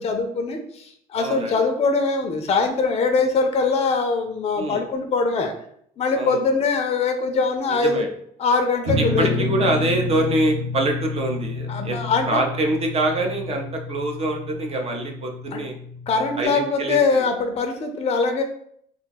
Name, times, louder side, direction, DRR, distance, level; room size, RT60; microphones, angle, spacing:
voice 1, 0.0-5.5 6.0-8.1 8.4-9.3 11.7-12.4 15.5-15.6 16.1-18.4, left 4 dB, 35° left, 5 dB, 0.5 m, -22 dB
voice 2, 1.2-1.5 4.6-4.8 6.1-6.4 7.7-8.1 9.0-15.8 16.4-17.3, right 2 dB, 35° right, 3 dB, 0.6 m, -25 dB
sound 1, 8.9-16.4, left 3 dB, 60° right, 0.9 m, -30 dB
2.5 x 2.2 x 4.0 m, 0.67 s
cardioid pair, 110°, 17 cm